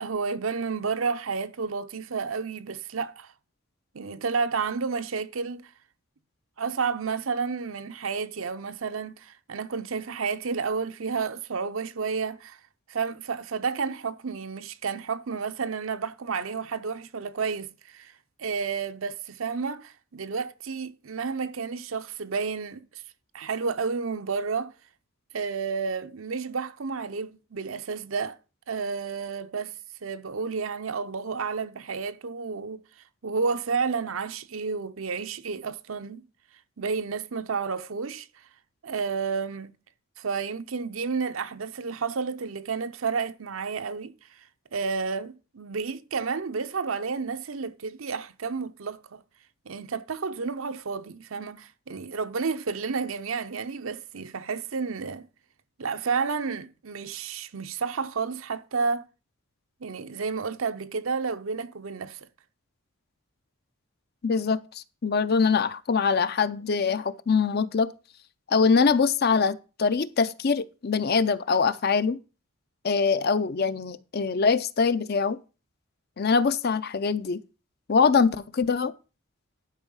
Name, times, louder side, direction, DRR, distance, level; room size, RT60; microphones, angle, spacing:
voice 1, 0.0-3.3 3.9-5.7 6.6-12.6 12.9-18.1 18.4-22.8 23.3-24.7 25.3-28.4 28.7-29.7 30.0-32.8 33.2-36.2 36.8-38.3 38.8-39.7 40.2-44.1 44.7-49.2 49.7-55.3 55.8-59.1 59.8-62.3, right 5 dB, 75° right, 0.7 m, -31 dB
voice 2, 64.2-67.9 68.5-72.2 72.8-75.4 76.2-77.4 77.9-78.9, left 5 dB, 50° left, 0.5 m, -23 dB
11.5 x 5.4 x 5.5 m
head